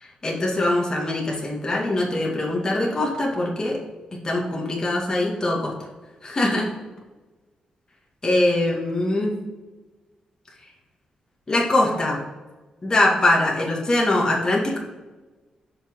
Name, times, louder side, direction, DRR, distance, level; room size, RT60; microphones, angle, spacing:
voice 1, 0.2-3.8 4.1-5.7 6.2-6.7 8.2-9.3 11.5-12.2 12.8-14.8, left 1 dB, 30° left, -3 dB, 2.3 m, -22 dB
6.5 x 5.8 x 4.8 m, 1.2 s
cardioid pair, 90°, 2 cm